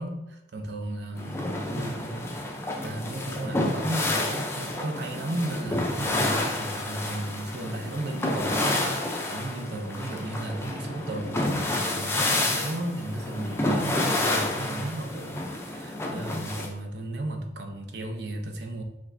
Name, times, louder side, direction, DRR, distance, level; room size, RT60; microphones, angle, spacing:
voice 1, 0.0-2.4 2.8-18.8, right 1 dB, 60° right, 4 dB, 0.6 m, -34 dB
sound 1, 1.2-16.7, left 1 dB, 15° left, 0.4 m, -29 dB
5.1 x 3.4 x 2.6 m, 0.91 s
head